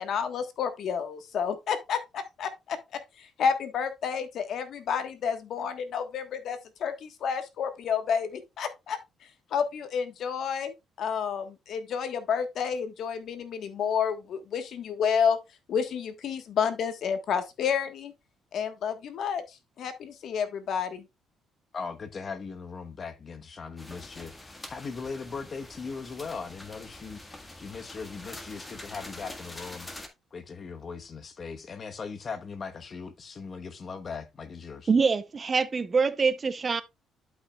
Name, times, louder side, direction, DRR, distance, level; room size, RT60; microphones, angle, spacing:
voice 1, 0.0-2.8 3.2-9.0 9.5-15.4 15.7-18.1 18.5-19.4 19.8-21.0, left 7 dB, 65° left, 1.4 m, -30 dB
voice 2, 21.7-29.9 30.3-34.9, left 5 dB, 40° left, 1.1 m, -39 dB
sound 1, 23.8-30.1, left 1 dB, 15° left, 1.6 m, -45 dB
voice 3, 34.9-36.8, right 5 dB, 30° right, 0.7 m, -24 dB
11.5 x 5.7 x 2.3 m
cardioid pair, 110°, 0 cm